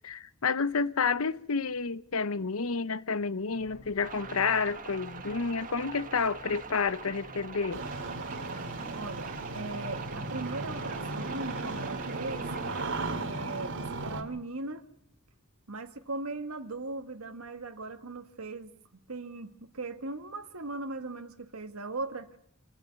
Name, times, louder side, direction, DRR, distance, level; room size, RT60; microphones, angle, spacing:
voice 1, 0.0-7.8, left 5 dB, 70° left, 0.8 m, -30 dB
sound 1, 3.5-15.9 16.5-16.6, equal, 35° left, 3.4 m, -55 dB
sound 2, 4.0-12.8, right 5 dB, 40° right, 1.6 m, -43 dB
Engine starting, 7.7-14.2, right 2 dB, 60° right, 2.6 m, -36 dB
voice 2, 8.9-12.5 13.1-14.8 15.7-18.7 19.1-22.3, right 2 dB, 75° right, 1.6 m, -39 dB
25.0 x 15.0 x 9.5 m
head